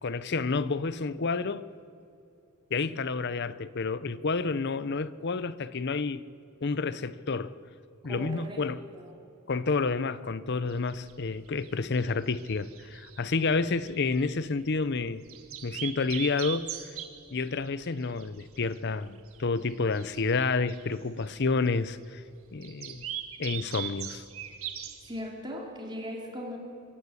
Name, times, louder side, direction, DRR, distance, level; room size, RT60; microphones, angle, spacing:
voice 1, 0.0-1.7 2.7-6.2 6.6-7.5 8.0-8.8 9.5-15.2 15.6-16.7 17.3-22.2 22.5-23.0 23.4-24.2, left 4 dB, 50° left, 0.6 m, -29 dB
voice 2, 8.0-8.6 8.9-9.1 25.0-26.6, equal, 20° right, 3.5 m, -39 dB
sound 1, 10.7-25.2, right 10 dB, 70° right, 1.6 m, -42 dB
25.0 x 14.5 x 8.4 m
head